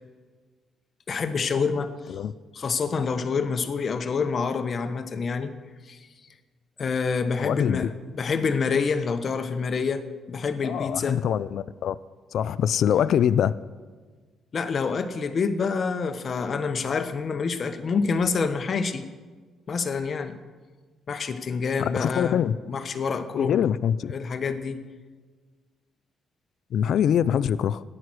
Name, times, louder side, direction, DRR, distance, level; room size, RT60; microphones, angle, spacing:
voice 1, 1.1-1.9 2.5-5.5 5.9-6.0 6.8-10.0 10.3-11.2 14.5-19.0 19.7-20.4 21.1-23.7 24.1-24.8, left 5 dB, 45° left, 1.2 m, -27 dB
voice 2, 7.4-7.9 10.6-12.0 12.3-13.6 21.8-22.6 23.4-24.1 26.7-27.8, left 9 dB, 70° left, 0.4 m, -24 dB
14.0 x 10.0 x 6.4 m
cardioid pair, 90°, 0 cm